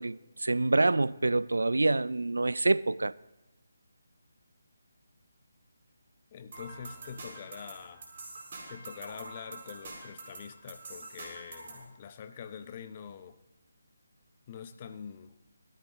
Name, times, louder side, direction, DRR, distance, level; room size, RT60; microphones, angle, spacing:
voice 1, 0.0-3.1, right 2 dB, 70° right, 0.3 m, -26 dB
voice 2, 6.3-8.0 8.7-13.4 14.5-15.3, left 7 dB, 30° left, 0.7 m, -45 dB
sound 1, 6.5-11.8, right 2 dB, 40° right, 5.0 m, -46 dB
18.0 x 13.0 x 3.1 m
figure-of-eight pair, 150°, 0 cm